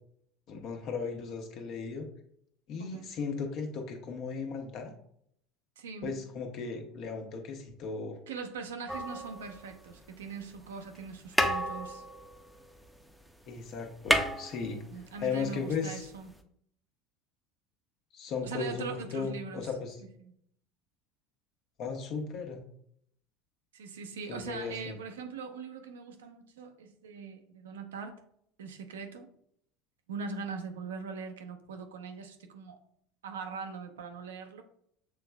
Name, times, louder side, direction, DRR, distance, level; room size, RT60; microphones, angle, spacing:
voice 1, 0.5-2.1 2.7-4.9 6.0-8.2 13.5-14.8 15.2-16.0 18.1-20.0 21.8-22.6 24.3-25.0, left 5 dB, 55° left, 4 dB, 1.0 m, -36 dB
voice 2, 2.8-3.1 5.8-6.2 8.3-12.0 14.9-16.3 18.4-19.7 20.0-20.3 23.7-28.1 28.6-29.3 30.1-32.8 33.2-34.6, right 5 dB, 85° right, 6 dB, 0.6 m, -41 dB
sound 1, 8.9-10.0 10.9-11.1 11.3-13.2 13.5-13.6 13.8-15.2 16.4-16.5, equal, ahead, 0.6 m, -31 dB
6.6 x 3.3 x 2.2 m, 0.69 s
hypercardioid pair, 80°, 0 cm